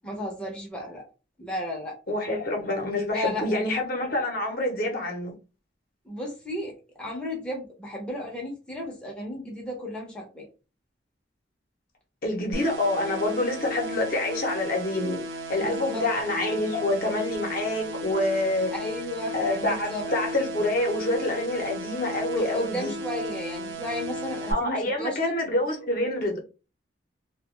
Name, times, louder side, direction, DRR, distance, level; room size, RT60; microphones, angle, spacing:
voice 1, 0.0-1.0 1.4-2.0 3.1-3.6 6.1-10.5 15.6-16.0 18.7-19.3 19.7-20.0 22.3-25.3, left 1 dB, 5° left, 0.6 m, -34 dB
voice 2, 2.1-5.3 12.2-15.2 15.5-18.7 19.3-22.9 24.5-26.4, left 1 dB, 50° left, 0.7 m, -27 dB
sound 1, 12.5-24.5, right 1 dB, 70° right, 0.5 m, -35 dB
2.4 x 2.2 x 3.0 m
head